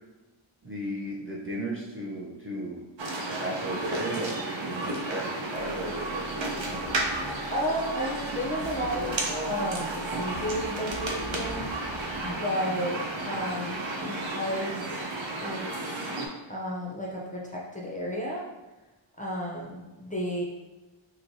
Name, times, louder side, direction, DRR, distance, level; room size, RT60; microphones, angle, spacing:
voice 1, 0.6-2.8 3.4-6.9, right 1 dB, 25° right, -5 dB, 0.5 m, -35 dB
sound 1, 3.0-16.3, right 2 dB, 70° right, 0.6 m, -33 dB
sound 2, 5.5-12.4, right 1 dB, 90° right, 0.9 m, -46 dB
voice 2, 7.5-11.7 12.2-15.0 15.4-16.1 16.5-18.4 19.2-20.4, equal, 15° left, -4 dB, 0.6 m, -33 dB
3.1 x 2.7 x 2.6 m, 1.1 s
wide cardioid pair, 45°, 48 cm